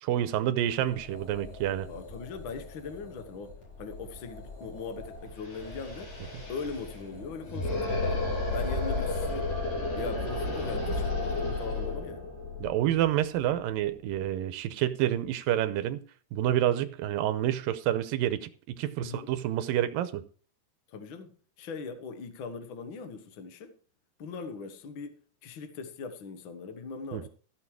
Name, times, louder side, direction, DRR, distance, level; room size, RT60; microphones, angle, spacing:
voice 1, 0.0-1.9 12.6-16.0 16.3-20.2 27.1-27.2, right 12 dB, 80° right, 2.4 m, -28 dB
sound 1, 0.6-9.7, left 2 dB, 40° left, 5.4 m, -47 dB
voice 2, 1.9-6.1 6.5-8.3 8.5-9.5 10.0-12.3 19.0-19.3 20.9-23.7 24.2-27.3, left 5 dB, 85° left, 1.1 m, -40 dB
sound 2, 5.1-5.2 5.4-14.3, left 2 dB, 65° left, 4.5 m, -32 dB
15.0 x 6.7 x 4.8 m
omnidirectional pair, 4.2 m